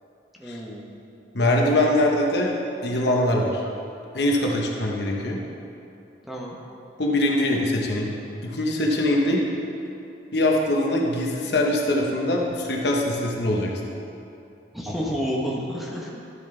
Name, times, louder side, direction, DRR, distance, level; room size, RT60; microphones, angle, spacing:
voice 1, 0.4-0.9 6.2-6.6 14.7-16.2, equal, ahead, -4 dB, 0.9 m, -30 dB
voice 2, 1.3-2.5 2.8-3.6 4.1-5.4 7.0-8.1 8.4-9.4 10.3-13.9, left 1 dB, 65° left, -1 dB, 1.1 m, -22 dB
12.0 x 7.3 x 3.3 m, 2.7 s
head